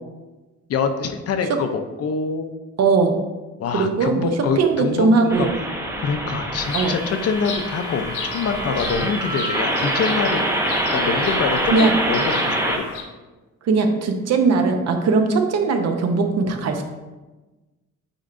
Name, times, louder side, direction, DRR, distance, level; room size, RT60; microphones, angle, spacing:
voice 1, 0.7-2.5 3.6-5.5 6.0-10.5 10.7-12.9, left 5 dB, 55° left, 7 dB, 0.6 m, -25 dB
voice 2, 2.8-3.1 3.7-5.5 6.7-7.0 11.7-11.9 13.6-16.8, right 4 dB, 60° right, 5 dB, 0.7 m, -19 dB
sound 1, 5.3-12.8, right 1 dB, 10° right, 0.6 m, -25 dB
Bird vocalization bird call bird song, 6.6-13.0, left 4 dB, 85° left, 1.0 m, -33 dB
8.9 x 4.4 x 2.5 m, 1.2 s
cardioid pair, 160°, 29 cm